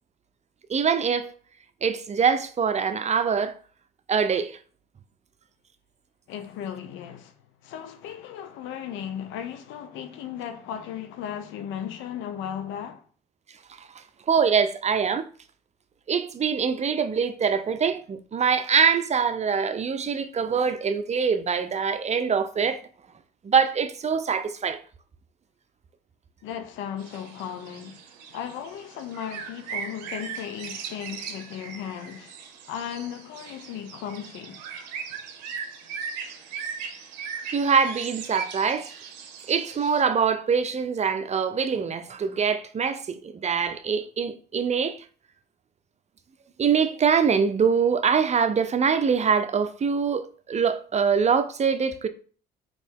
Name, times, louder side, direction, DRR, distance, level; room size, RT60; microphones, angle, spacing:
voice 1, 0.7-1.3 1.8-3.5 4.1-4.6 13.8-13.9 14.3-15.3 16.1-22.8 23.4-24.8 37.5-38.9 39.5-45.0 46.6-52.1, right 6 dB, 35° right, 0.6 m, -24 dB
voice 2, 6.3-7.3 7.6-13.0 26.4-28.0 28.3-32.4 32.7-34.6, left 9 dB, 70° left, 0.6 m, -36 dB
sound 1, 27.0-40.0, right 6 dB, 85° right, 0.6 m, -39 dB
4.0 x 3.1 x 3.7 m
hypercardioid pair, 50°, 21 cm